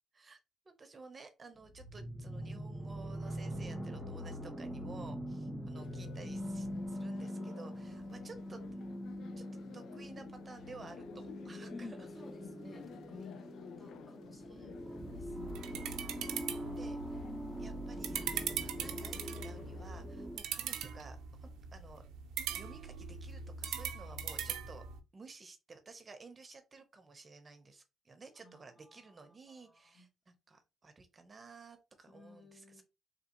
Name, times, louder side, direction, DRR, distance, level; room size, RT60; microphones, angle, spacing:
voice 1, 0.6-8.6 9.4-9.5 9.7-11.9 14.5-14.8 16.7-17.2 17.6-22.0 22.5-24.8 25.1-32.8, right 4 dB, 35° right, 0.8 m, -54 dB
sound 1, 1.7-20.4, equal, 5° left, 2.1 m, -43 dB
voice 2, 5.4-6.0 11.7-16.0 17.2-18.0 28.3-30.1 32.1-32.8, left 2 dB, 25° left, 1.3 m, -55 dB
sound 2, 5.7-19.9, left 8 dB, 75° left, 0.4 m, -53 dB
sound 3, 15.0-25.0, right 7 dB, 90° right, 0.5 m, -41 dB
3.9 x 3.6 x 3.0 m
cardioid pair, 90°, 0 cm